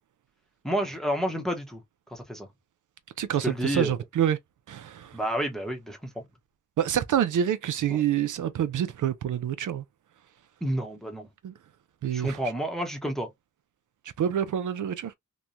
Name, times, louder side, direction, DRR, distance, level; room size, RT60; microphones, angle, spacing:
voice 1, 0.6-1.8 2.1-2.5 3.4-3.9 5.1-6.1 7.9-8.0 10.6-11.3 12.1-13.3, equal, ahead, 0.8 m, -30 dB
voice 2, 3.2-4.4 4.7-5.1 6.8-9.8 11.4-11.5 12.0-12.4 14.2-15.1, right 10 dB, 70° right, 0.5 m, -27 dB
3.0 x 2.2 x 2.5 m
cardioid pair, 75°, 32 cm